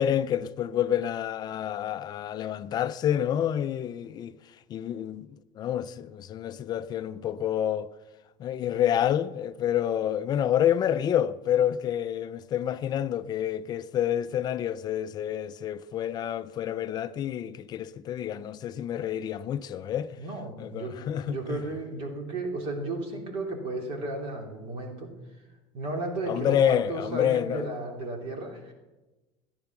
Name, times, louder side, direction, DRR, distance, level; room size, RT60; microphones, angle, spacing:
voice 1, 0.0-5.3 5.6-7.9 8.4-20.2 20.6-21.6 26.2-27.7, left 10 dB, 35° left, 0.4 m, -28 dB
voice 2, 20.2-25.1 25.7-28.7, right 2 dB, 50° right, 3.0 m, -34 dB
14.5 x 10.5 x 6.0 m
cardioid pair, 150°, 12 cm